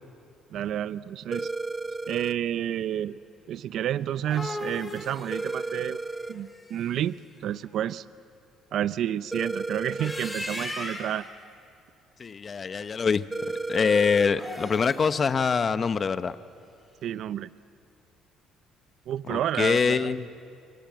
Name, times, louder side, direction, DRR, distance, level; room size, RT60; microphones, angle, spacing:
voice 1, 0.5-1.5 2.1-3.2 3.5-6.0 6.3-7.1 7.4-8.0 8.7-11.3 17.0-17.5 19.1-20.1, right 11 dB, 65° right, 16 dB, 0.5 m, -30 dB
sound 1, 1.3-2.4 5.3-6.4 9.3-10.4 13.3-14.4, right 3 dB, 15° right, 0.6 m, -33 dB
sound 2, 4.0-7.1 9.8-11.3 14.2-15.1, left 1 dB, 10° left, 4.3 m, -37 dB
voice 2, 12.2-16.4 19.3-20.3, left 5 dB, 35° left, 12 dB, 0.9 m, -25 dB
28.0 x 25.0 x 7.6 m, 2.6 s
cardioid pair, 100°, 0 cm